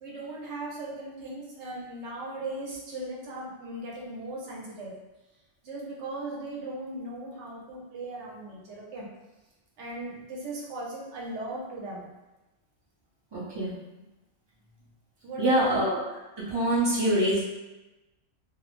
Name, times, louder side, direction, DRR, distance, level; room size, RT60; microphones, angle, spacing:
voice 1, 0.0-4.9 5.6-9.1 9.8-12.1 15.2-15.8, right 2 dB, 70° right, -4 dB, 0.9 m, -38 dB
voice 2, 13.3-13.7 15.4-16.0 16.4-17.4, right 1 dB, 30° right, -8 dB, 0.5 m, -25 dB
2.3 x 2.0 x 3.0 m, 1.0 s
omnidirectional pair, 1.3 m